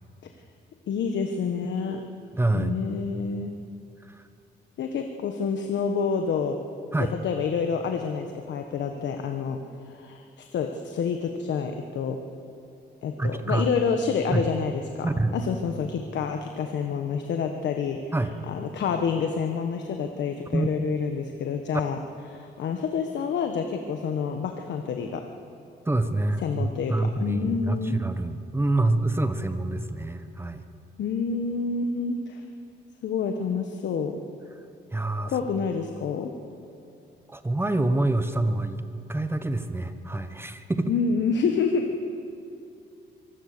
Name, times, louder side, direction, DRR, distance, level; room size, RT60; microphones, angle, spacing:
voice 1, 0.9-2.0 2.5-3.5 4.8-6.6 7.0-9.6 9.9-12.2 13.0-15.1 15.3-18.1 18.5-22.0 22.3-25.2 26.4-26.9 27.2-28.0 31.0-32.4 33.0-34.2 35.2-36.4 40.9-42.0, left 5 dB, 70° left, 5 dB, 1.3 m, -28 dB
voice 2, 2.4-2.8 4.0-4.3 6.9-7.2 13.2-13.7 14.3-14.5 15.0-15.4 18.1-18.3 20.5-20.7 25.8-30.6 34.9-35.4 37.3-38.8 39.1-40.9, right 2 dB, 10° right, 9 dB, 1.1 m, -26 dB
24.0 x 17.0 x 6.8 m, 2.7 s
cardioid pair, 110°, 19 cm